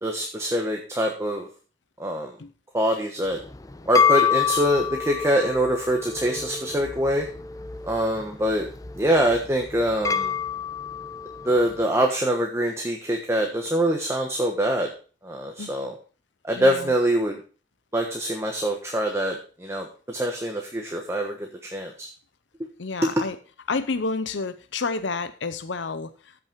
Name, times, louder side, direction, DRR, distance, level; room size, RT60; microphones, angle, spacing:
voice 1, 0.0-1.5 2.0-2.3 2.7-3.4 3.9-7.3 7.8-8.7 8.9-10.3 11.4-14.9 15.2-15.9 16.4-17.4 17.9-22.1 23.0-23.1, right 1 dB, 15° right, 2 dB, 1.2 m, -24 dB
sound 1, 3.3-11.8, left 7 dB, 20° left, 0.5 m, -28 dB
voice 2, 16.6-16.9 22.8-23.4 23.7-26.4, left 4 dB, 80° left, 11 dB, 0.7 m, -30 dB
14.0 x 6.2 x 4.6 m, 0.38 s
head